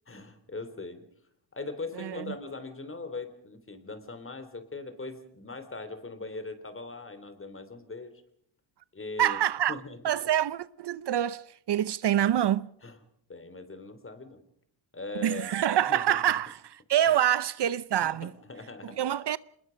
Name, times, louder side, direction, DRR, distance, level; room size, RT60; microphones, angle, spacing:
voice 1, 0.1-1.1 1.5-8.1 8.9-9.4 9.7-10.0 12.8-13.0 13.3-14.4 14.9-15.6 15.9-16.2 17.1-17.2 18.0-19.0, left 3 dB, 25° left, 3.3 m, -40 dB
voice 2, 1.9-2.3 9.2-9.7 10.0-12.7 15.2-16.6 16.9-18.3 18.8-19.4, right 11 dB, 55° right, 0.7 m, -26 dB
26.0 x 21.0 x 5.2 m
cardioid pair, 95°, 48 cm